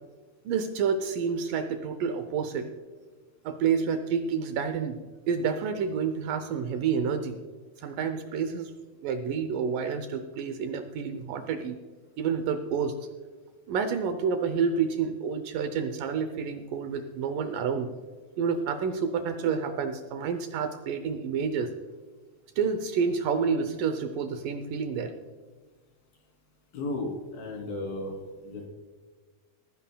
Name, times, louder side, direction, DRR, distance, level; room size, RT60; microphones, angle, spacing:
voice 1, 0.5-2.7 3.4-5.0 5.3-7.4 7.8-8.7 9.0-11.8 12.2-13.0 13.7-17.9 18.4-21.7 22.6-25.1, right 6 dB, 75° right, 8 dB, 2.1 m, -29 dB
voice 2, 26.7-28.2 28.4-28.7, left 2 dB, 75° left, 1 dB, 4.8 m, -34 dB
19.0 x 15.0 x 2.3 m, 1.4 s
omnidirectional pair, 4.3 m